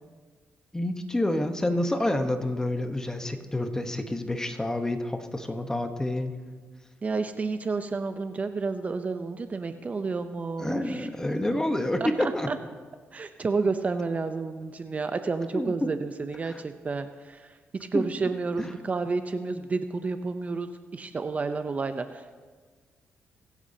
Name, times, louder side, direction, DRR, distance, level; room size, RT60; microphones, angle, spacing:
voice 1, 0.7-6.4 10.6-12.5 15.5-15.9 16.4-16.6 17.9-18.1 18.6-18.7, left 1 dB, 15° left, 6 dB, 1.1 m, -28 dB
voice 2, 7.0-11.1 12.0-12.6 13.1-22.3, right 4 dB, 35° right, 9 dB, 0.6 m, -30 dB
23.5 x 8.3 x 2.8 m, 1.5 s
cardioid pair, 85°, 4 cm